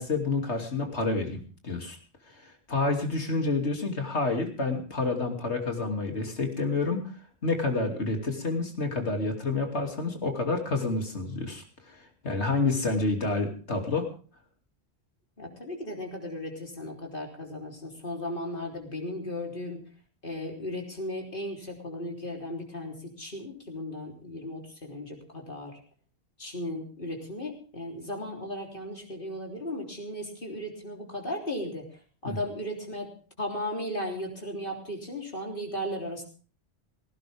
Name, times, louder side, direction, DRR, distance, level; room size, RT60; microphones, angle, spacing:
voice 1, 0.0-2.0 2.4-7.1 7.4-14.1 32.2-32.4, left 3 dB, 85° left, 3 dB, 3.1 m, -29 dB
voice 2, 15.4-19.8 20.2-25.8 26.4-33.1 33.4-36.2, left 1 dB, 50° left, 0 dB, 3.9 m, -36 dB
18.0 x 16.5 x 3.6 m, 0.39 s
omnidirectional pair, 1.1 m